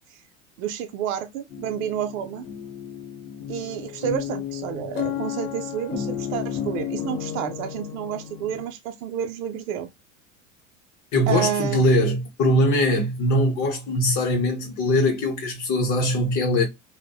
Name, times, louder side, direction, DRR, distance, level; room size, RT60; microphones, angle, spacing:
voice 1, 0.6-2.5 3.5-9.9 11.3-11.9, right 9 dB, 80° right, 0.5 m, -30 dB
sound 1, 1.5-8.7, left 9 dB, 90° left, 0.8 m, -33 dB
voice 2, 11.1-16.6, left 1 dB, 45° left, 0.8 m, -21 dB
2.6 x 2.1 x 2.2 m
supercardioid pair, 105°, 39 cm